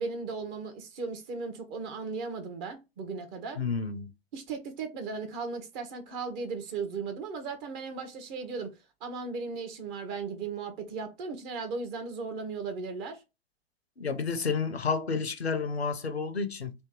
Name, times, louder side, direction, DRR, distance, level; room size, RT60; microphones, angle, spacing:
voice 1, 0.0-3.6 4.3-8.7 9.0-13.2, right 4 dB, 45° right, 1.2 m, -36 dB
voice 2, 3.6-4.1 14.0-16.7, left 5 dB, 90° left, 0.6 m, -30 dB
3.4 x 2.7 x 3.6 m
figure-of-eight pair, 90°, 31 cm